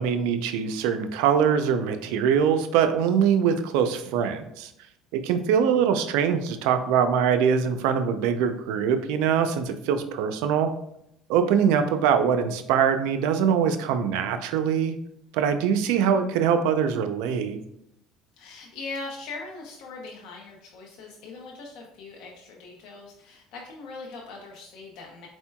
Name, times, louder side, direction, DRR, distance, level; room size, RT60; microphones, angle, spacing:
voice 1, 0.0-4.7 5.1-10.7 11.3-15.0 15.3-17.6, right 7 dB, 85° right, 9 dB, 0.4 m, -23 dB
voice 2, 18.4-25.3, left 3 dB, 70° left, -2 dB, 0.7 m, -40 dB
4.3 x 4.3 x 2.3 m, 0.76 s
cardioid pair, 115°, 0 cm